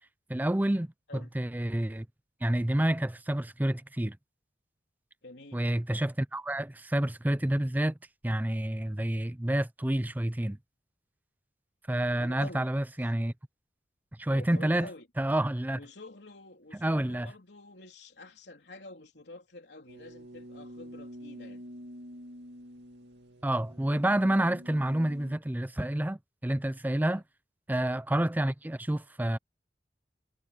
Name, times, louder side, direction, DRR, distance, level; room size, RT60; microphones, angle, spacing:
voice 1, 0.3-0.9 1.3-2.1 2.4-4.2 5.5-8.0 8.2-10.6 11.9-13.3 14.2-14.9 15.2-15.8 16.7-17.3 23.4-27.2 27.7-29.4, right 1 dB, 10° right, 0.5 m, -29 dB
voice 2, 5.2-5.6 12.1-12.7 14.3-15.1 15.7-21.6 27.1-27.2, left 2 dB, 75° left, 3.6 m, -48 dB
sound 1, 19.9-25.3, equal, 80° right, 2.4 m, -47 dB
head